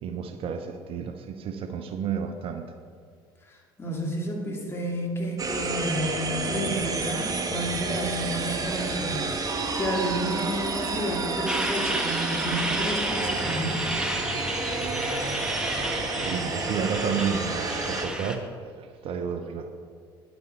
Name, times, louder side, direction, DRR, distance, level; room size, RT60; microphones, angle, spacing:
voice 1, 0.0-2.7 15.9-19.7, right 6 dB, 50° right, 7 dB, 0.8 m, -31 dB
voice 2, 3.5-13.9, equal, 20° left, -1 dB, 2.6 m, -31 dB
sound 1, 5.4-18.1, right 3 dB, 30° right, 1.3 m, -30 dB
Truck, 11.5-18.4, right 1 dB, 5° right, 1.2 m, -31 dB
10.0 x 8.2 x 4.5 m, 2.1 s
hypercardioid pair, 65°, 12 cm